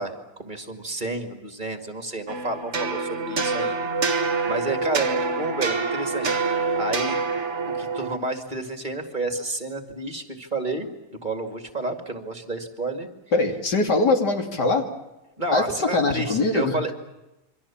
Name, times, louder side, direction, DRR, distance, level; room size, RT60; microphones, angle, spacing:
voice 1, 0.0-6.3 6.8-7.2 7.8-10.9 11.2-13.1 15.4-16.9, right 2 dB, 30° right, 5 dB, 2.4 m, -30 dB
sound 1, 2.3-8.2, right 4 dB, 45° right, 1.7 m, -26 dB
voice 2, 13.3-14.9 15.5-16.9, left 3 dB, 90° left, 3 dB, 3.5 m, -22 dB
28.0 x 24.5 x 7.3 m, 0.97 s
omnidirectional pair, 1.8 m